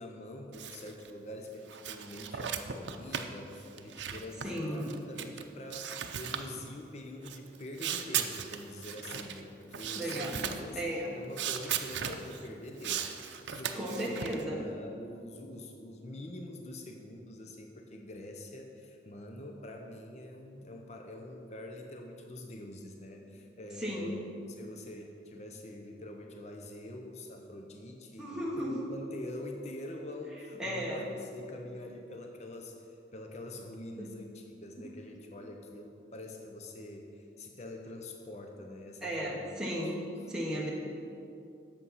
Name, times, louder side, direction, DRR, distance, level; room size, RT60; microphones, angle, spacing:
voice 1, 0.0-10.8 11.1-24.2 24.5-39.5, left 1 dB, 40° left, 3 dB, 0.6 m, -45 dB
sound 1, 0.5-1.1 1.5-5.4 5.7-6.5 7.2-9.4 9.7-10.7 11.3-12.5 12.8-14.4, right 8 dB, 80° right, 0.5 m, -37 dB
voice 2, 4.4-4.9 9.9-11.2 13.8-14.6 23.8-24.2 28.2-28.8 30.6-31.0 34.0-34.1 34.8-35.0 39.0-40.0 40.3-40.7, equal, 5° right, -5 dB, 1.1 m, -35 dB
8.2 x 6.9 x 5.6 m, 2.6 s
head